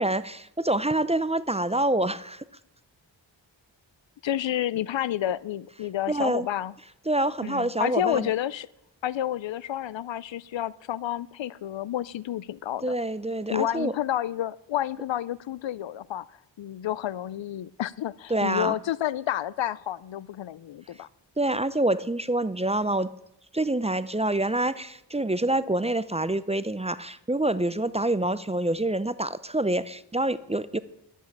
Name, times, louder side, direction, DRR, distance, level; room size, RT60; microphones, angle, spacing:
voice 1, 0.0-2.4 6.1-6.5 7.1-8.3 12.8-13.9 18.3-18.8 21.4-23.1 23.5-30.8, right 1 dB, 15° right, 15 dB, 0.5 m, -26 dB
voice 2, 4.2-6.7 7.4-8.7 9.0-13.0 13.5-16.3 16.6-21.1, left 12 dB, 75° left, 21 dB, 0.5 m, -30 dB
11.0 x 8.2 x 8.8 m, 0.85 s
wide cardioid pair, 60°, 45 cm